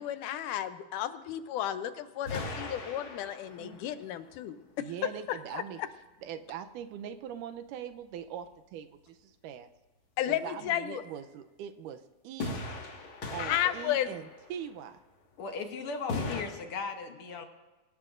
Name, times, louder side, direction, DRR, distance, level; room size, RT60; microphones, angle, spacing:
voice 1, 0.0-4.9 5.3-5.6 10.2-11.0 13.4-14.1, left 11 dB, 80° left, 11 dB, 2.3 m, -33 dB
sound 1, 2.2-3.9 12.4-14.6 16.1-16.4, left 3 dB, 45° left, 2.3 m, -38 dB
voice 2, 4.8-5.8 6.2-9.7 10.3-12.7 13.3-15.0, right 9 dB, 90° right, 8 dB, 2.3 m, -42 dB
voice 3, 15.4-17.4, left 4 dB, 60° left, 5 dB, 1.5 m, -37 dB
24.0 x 17.0 x 2.6 m, 1.2 s
omnidirectional pair, 3.6 m